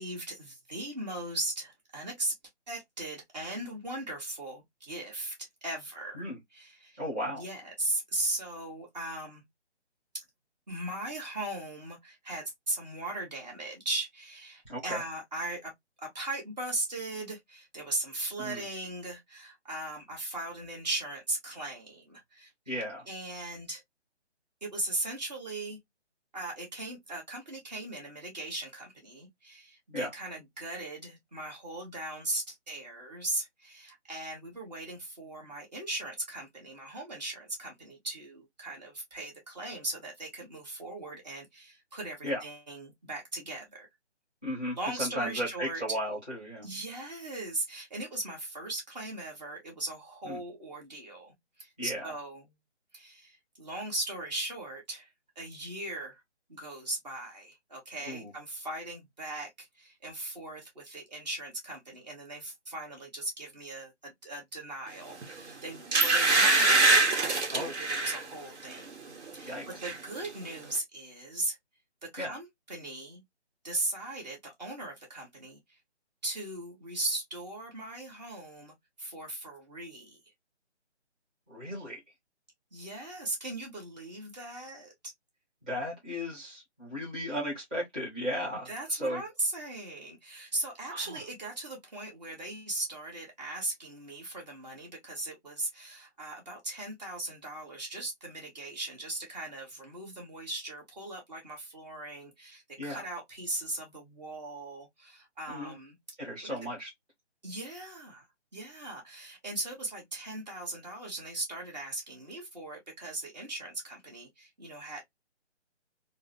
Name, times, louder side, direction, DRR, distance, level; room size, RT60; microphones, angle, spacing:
voice 1, 0.0-2.3 2.7-5.3 5.6-6.3 6.5-7.0 7.3-9.4 10.7-15.7 16.0-22.5 23.1-23.8 24.6-25.8 26.3-43.9 44.8-45.8 46.6-52.4 52.9-55.1 55.3-56.2 56.5-68.9 69.3-69.6 69.8-71.6 72.0-73.2 73.6-75.8 76.2-80.2 82.7-84.9 88.6-105.9 106.4-106.6 107.4-108.2 108.5-115.0, right 2 dB, 35° right, 1.2 m, -38 dB
voice 2, 6.9-7.4 14.6-15.0 18.4-18.6 22.7-23.1 29.9-30.1 42.2-42.4 44.4-46.7 50.2-50.4 51.8-52.1 58.0-58.3 67.5-67.7 69.5-69.8 72.2-72.3 81.5-82.0 85.6-89.2 90.9-91.2 102.8-103.1 105.5-105.8 106.2-106.9, equal, 10° right, 0.7 m, -35 dB
sound 1, 65.2-65.4 65.9-68.2 68.7-68.9 69.2-70.0 70.2-70.3, right 2 dB, 65° right, 1.1 m, -24 dB
3.6 x 2.0 x 2.6 m
figure-of-eight pair, 160°, 35 cm